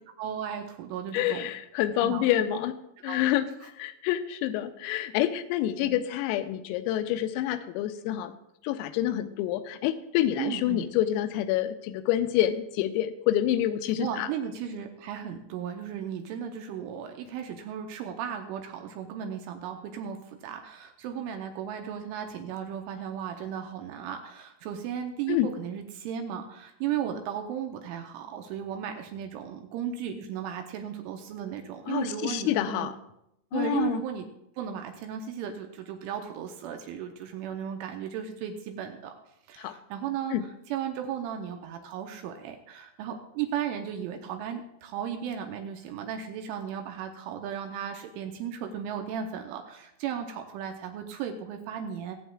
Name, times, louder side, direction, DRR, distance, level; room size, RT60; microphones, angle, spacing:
voice 1, 0.2-1.5 2.0-2.2 2.5-2.6 3.0-3.2 3.6-3.7 5.8-6.0 10.4-10.9 14.0-32.9 33.5-34.3 34.6-39.1 39.5-52.2, right 8 dB, 80° right, 4 dB, 3.0 m, -35 dB
voice 2, 1.1-2.7 3.0-3.5 3.8-8.3 8.6-14.3 25.3-25.5 31.9-32.9 33.5-34.0 39.6-39.8 40.3-40.4, left 12 dB, 85° left, 10 dB, 3.3 m, -27 dB
23.5 x 8.0 x 2.4 m, 0.82 s
omnidirectional pair, 6.0 m